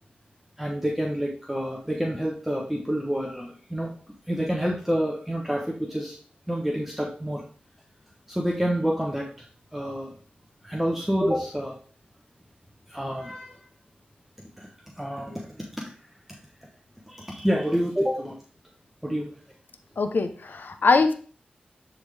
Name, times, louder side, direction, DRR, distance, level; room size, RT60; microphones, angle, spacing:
voice 1, 0.6-3.9 4.3-6.2 6.5-7.4 8.3-9.5 9.7-10.1 10.6-11.8 12.9-13.6 14.6-15.8 17.1-18.4 19.0-19.4, equal, 5° right, -1 dB, 1.1 m, -28 dB
voice 2, 20.0-21.1, left 4 dB, 70° left, 8 dB, 0.8 m, -22 dB
10.0 x 3.8 x 3.4 m, 0.42 s
cardioid pair, 55°, 3 cm